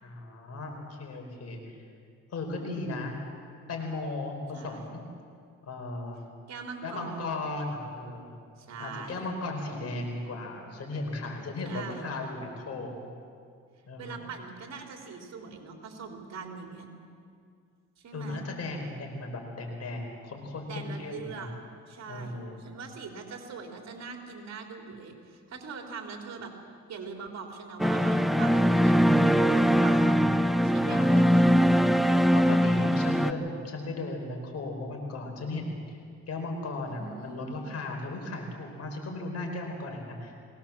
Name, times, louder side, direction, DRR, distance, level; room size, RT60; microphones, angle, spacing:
voice 1, 0.0-1.8 2.3-3.2 3.7-5.0 5.6-6.2 6.8-8.3 8.8-13.1 13.9-14.2 18.1-21.5 22.1-22.6 30.8-31.5 32.3-36.0 36.3-40.4, left 2 dB, 55° left, 3 dB, 4.7 m, -36 dB
voice 2, 4.5-5.0 6.5-7.5 8.6-9.2 11.6-12.1 14.0-16.9 18.0-18.4 20.7-21.5 21.9-26.5 26.9-28.9 29.5-30.3 30.6-31.7 36.9-37.7, right 5 dB, 60° right, 2 dB, 3.4 m, -42 dB
sound 1, 27.8-33.3, equal, ahead, 0.8 m, -22 dB
21.5 x 18.5 x 7.3 m, 2.3 s
cardioid pair, 90°, 30 cm